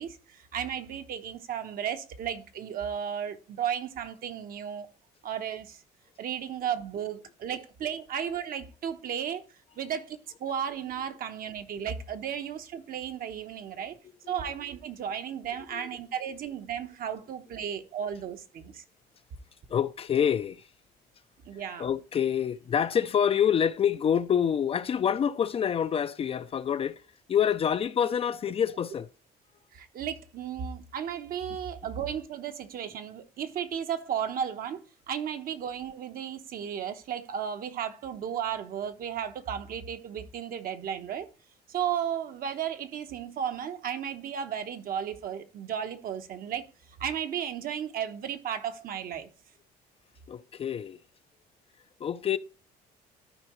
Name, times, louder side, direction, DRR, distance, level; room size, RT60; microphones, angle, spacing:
voice 1, 0.0-4.9 5.2-5.8 6.2-9.4 9.8-14.0 14.3-18.8 21.4-21.9 29.7-41.3 41.7-46.7 47.0-49.3, right 8 dB, 60° right, 1.0 m, -34 dB
voice 2, 19.7-20.7 21.8-27.0 27.3-29.1 50.3-51.0 52.0-52.4, left 8 dB, 35° left, 0.4 m, -27 dB
13.0 x 4.7 x 3.0 m
cardioid pair, 110°, 17 cm